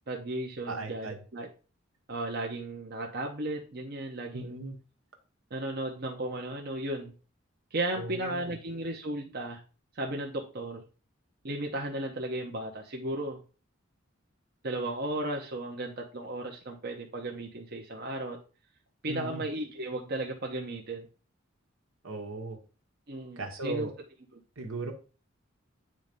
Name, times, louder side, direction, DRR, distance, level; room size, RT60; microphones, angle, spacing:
voice 1, 0.1-1.5 2.1-4.6 5.5-7.1 7.7-9.6 9.9-10.8 11.4-13.4 14.6-18.4 19.0-21.1 23.1-23.9 24.3-24.4, right 1 dB, 50° right, 1 dB, 1.0 m, -35 dB
voice 2, 0.7-1.2 4.3-4.8 7.9-8.5 19.0-19.4 22.0-22.6 23.4-23.9 24.6-24.9, right 2 dB, 80° right, 3 dB, 1.6 m, -37 dB
8.9 x 3.3 x 5.3 m, 0.35 s
head